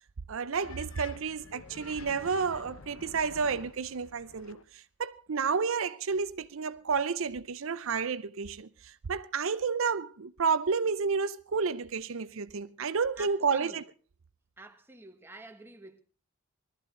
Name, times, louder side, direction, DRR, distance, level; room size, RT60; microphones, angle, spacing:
voice 1, 0.3-13.8, right 5 dB, 70° right, 0.6 m, -31 dB
sound 1, 0.6-4.6, left 4 dB, 75° left, 0.9 m, -48 dB
voice 2, 13.2-13.8 14.6-16.0, right 2 dB, 10° right, 1.2 m, -48 dB
20.5 x 13.0 x 3.8 m
head